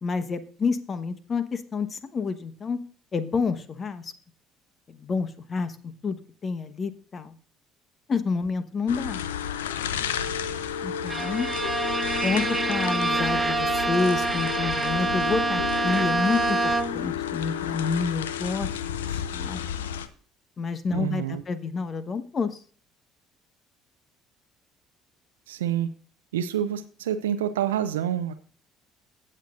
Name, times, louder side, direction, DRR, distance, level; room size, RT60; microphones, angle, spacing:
voice 1, 0.0-2.8 3.1-4.1 4.9-6.2 6.4-7.3 8.1-9.2 10.8-11.5 12.2-19.6 20.6-22.6, left 4 dB, 40° left, 12 dB, 1.2 m, -29 dB
sound 1, 8.9-20.1, left 9 dB, 80° left, 0.6 m, -31 dB
Bowed string instrument, 11.1-17.2, right 3 dB, 20° right, 0.5 m, -26 dB
voice 2, 20.9-21.4 25.5-25.9 26.3-28.3, right 10 dB, 80° right, 10 dB, 0.5 m, -27 dB
16.0 x 7.8 x 2.6 m, 0.42 s
hypercardioid pair, 55°, 0 cm